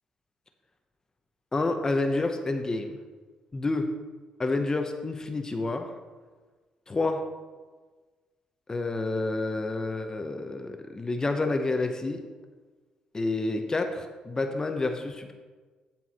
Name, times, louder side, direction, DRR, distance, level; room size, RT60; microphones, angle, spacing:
voice 1, 1.5-3.0 3.5-3.8 4.4-5.9 6.9-7.2 8.7-12.2 13.1-15.3, left 2 dB, 25° left, 6 dB, 0.8 m, -29 dB
14.0 x 4.6 x 4.3 m, 1.4 s
cardioid pair, 80°, 2 cm